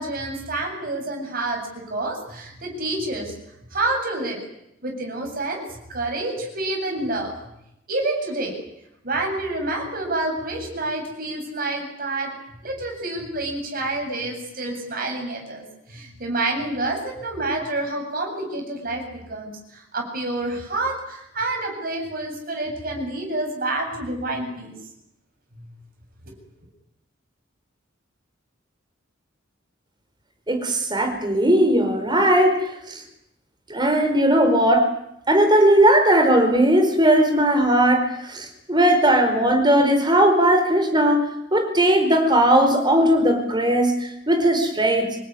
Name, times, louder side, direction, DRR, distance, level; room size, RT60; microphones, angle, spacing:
voice 1, 0.0-1.6 1.9-3.3 3.7-4.4 4.8-5.6 5.9-7.3 7.9-8.6 9.0-12.3 12.6-19.0 19.3-24.8 25.5-25.6, right 2 dB, 45° right, 2 dB, 8.0 m, -28 dB
voice 2, 30.5-33.0 33.7-34.9 35.3-45.2, right 1 dB, 20° right, 6 dB, 4.7 m, -18 dB
26.5 x 19.5 x 9.9 m, 0.81 s
head